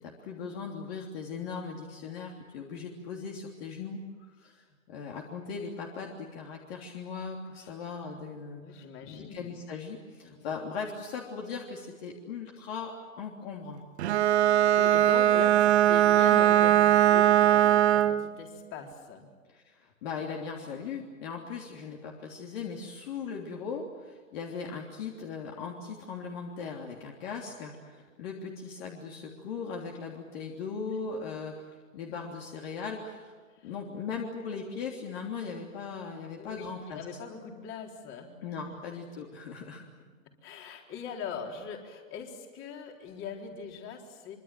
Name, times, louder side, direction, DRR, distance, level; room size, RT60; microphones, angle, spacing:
voice 1, 0.0-13.8 19.5-33.3 33.6-37.0 38.4-39.8, left 5 dB, 45° left, 0 dB, 3.3 m, -39 dB
voice 2, 8.6-9.6 10.2-10.5 14.4-19.3 33.5-33.7 36.3-38.4 40.4-44.4, left 6 dB, 30° left, 2 dB, 4.3 m, -41 dB
Bowed string instrument, 14.0-18.3, right 12 dB, 50° right, 1.5 m, -21 dB
24.5 x 24.5 x 7.6 m, 1.5 s
hypercardioid pair, 125°, 41 cm